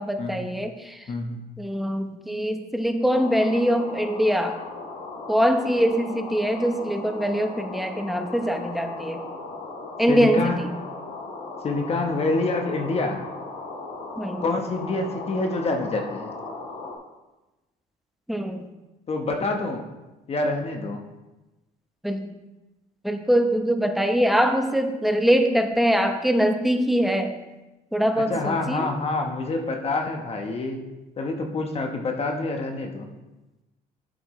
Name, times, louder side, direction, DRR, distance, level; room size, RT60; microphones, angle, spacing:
voice 1, 0.0-1.0 1.6-4.6 5.3-9.2 10.0-10.7 14.2-14.4 18.3-18.6 22.0-22.3 23.0-27.4 27.9-28.9, equal, ahead, 5 dB, 0.9 m, -23 dB
voice 2, 1.1-1.4 10.1-10.6 11.6-13.2 14.4-16.3 19.1-19.9 20.3-21.0 28.2-30.8 31.2-33.1, left 2 dB, 35° left, 3 dB, 1.1 m, -27 dB
sound 1, 3.1-16.9, left 3 dB, 85° left, 2.3 m, -37 dB
11.5 x 7.9 x 3.2 m, 1.1 s
cardioid pair, 110°, 17 cm